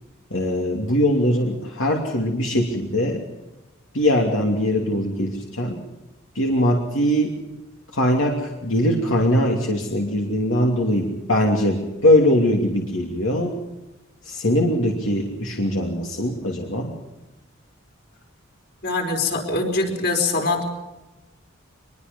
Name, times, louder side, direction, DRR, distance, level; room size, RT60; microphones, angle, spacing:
voice 1, 0.3-3.2 3.9-5.8 6.3-7.3 7.9-13.6 14.2-16.9, left 1 dB, 70° left, 0 dB, 2.8 m, -21 dB
voice 2, 18.8-20.6, left 3 dB, 50° left, 3 dB, 4.8 m, -23 dB
24.0 x 22.0 x 5.4 m, 1.0 s
head